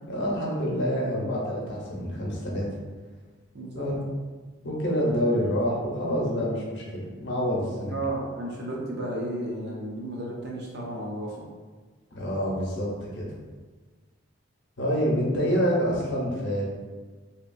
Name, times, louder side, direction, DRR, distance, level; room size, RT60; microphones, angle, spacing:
voice 1, 0.1-2.7 3.7-3.9 4.6-8.0 12.1-13.3 14.8-16.7, equal, 60° left, -3 dB, 0.7 m, -27 dB
voice 2, 3.5-3.9 7.9-11.4, right 1 dB, 55° right, -3 dB, 0.6 m, -33 dB
2.8 x 2.3 x 2.5 m, 1.4 s
head